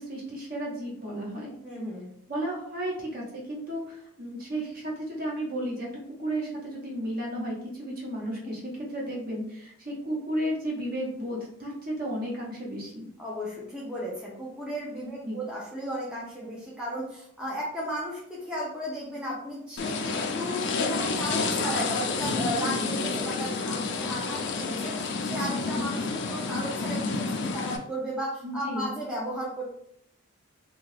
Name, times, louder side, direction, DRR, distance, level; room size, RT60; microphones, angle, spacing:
voice 1, 0.0-1.5 2.3-5.9 6.2-13.1 15.0-15.4 22.4-22.9 25.5-25.9 28.4-28.9, right 1 dB, 40° right, -3 dB, 0.9 m, -33 dB
voice 2, 1.6-2.1 8.2-8.3 13.2-29.6, equal, 5° right, -6 dB, 0.5 m, -35 dB
sound 1, 19.8-27.8, left 4 dB, 50° left, 0.4 m, -29 dB
2.7 x 2.4 x 3.2 m, 0.69 s
head